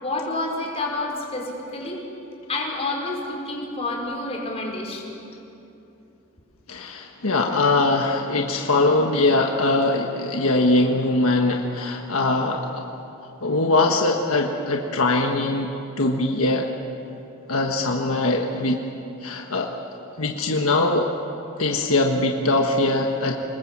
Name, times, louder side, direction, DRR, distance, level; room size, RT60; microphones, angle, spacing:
voice 1, 0.0-2.0 2.5-5.1, left 2 dB, 30° left, -1 dB, 4.7 m, -29 dB
voice 2, 6.7-12.8 13.4-15.7 16.0-16.7 17.5-18.8 19.2-19.7 20.2-21.1 21.6-23.4, left 2 dB, 75° left, 2 dB, 1.5 m, -21 dB
27.5 x 20.5 x 7.5 m, 2.8 s
head